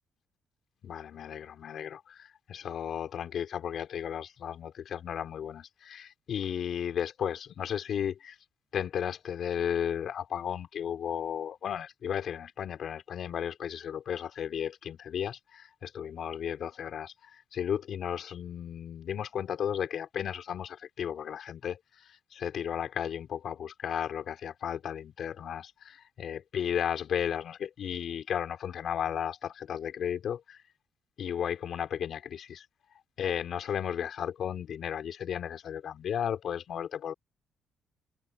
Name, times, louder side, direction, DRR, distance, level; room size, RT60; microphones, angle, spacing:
voice 1, 0.8-8.4 8.7-30.6 31.2-32.7 33.2-37.1, left 9 dB, 65° left, 3.6 m, -34 dB
open air
cardioid pair, 90°, 0 cm